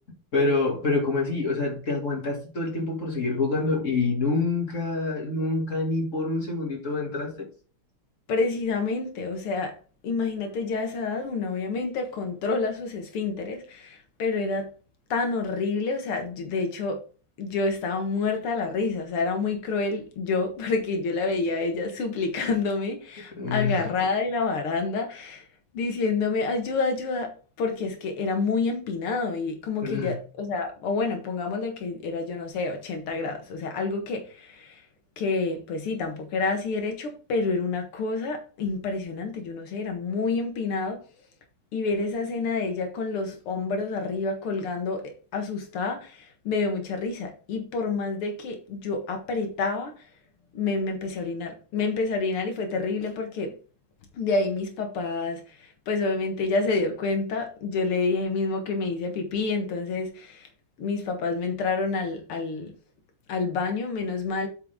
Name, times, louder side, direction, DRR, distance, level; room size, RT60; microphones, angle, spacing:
voice 1, 0.3-7.5 23.4-23.8 29.8-30.2, left 3 dB, 35° left, 2.7 m, -26 dB
voice 2, 8.3-9.8 10.0-14.7 15.1-17.0 17.4-25.5 25.7-27.3 27.6-34.8 35.2-41.0 41.7-50.0 50.5-53.6 54.1-60.5 60.8-62.7 63.3-64.5, left 4 dB, 85° left, 2.3 m, -28 dB
8.2 x 5.7 x 3.6 m
omnidirectional pair, 2.4 m